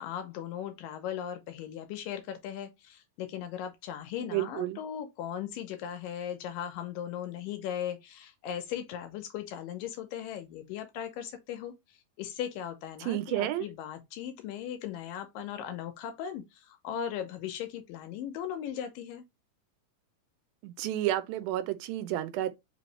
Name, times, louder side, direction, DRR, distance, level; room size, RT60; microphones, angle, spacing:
voice 1, 0.0-11.7 12.2-19.2, left 9 dB, 80° left, 2.3 m, -38 dB
voice 2, 4.3-4.8 13.1-13.7 20.6-22.5, right 14 dB, 85° right, 2.4 m, -31 dB
5.4 x 3.0 x 3.1 m
omnidirectional pair, 4.1 m